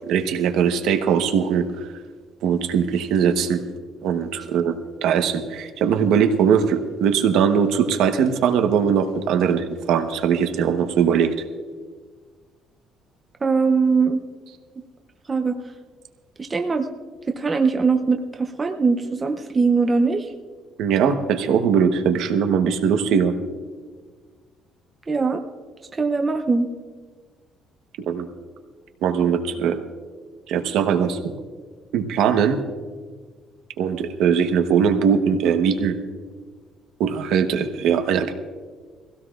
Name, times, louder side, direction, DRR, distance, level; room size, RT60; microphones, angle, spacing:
voice 1, 0.0-1.9 2.4-3.6 4.0-4.7 5.0-11.3 20.8-23.3 28.1-28.3 29.0-29.8 30.5-31.2 31.9-32.6 33.8-36.0 37.0-38.3, right 7 dB, 70° right, 6 dB, 1.0 m, -20 dB
voice 2, 13.4-14.2 15.3-15.5 16.4-16.9 17.3-20.2 25.1-25.4 26.0-26.7, right 4 dB, 20° right, 4 dB, 0.6 m, -21 dB
21.5 x 16.5 x 2.4 m, 1.5 s
cardioid pair, 175°, 0 cm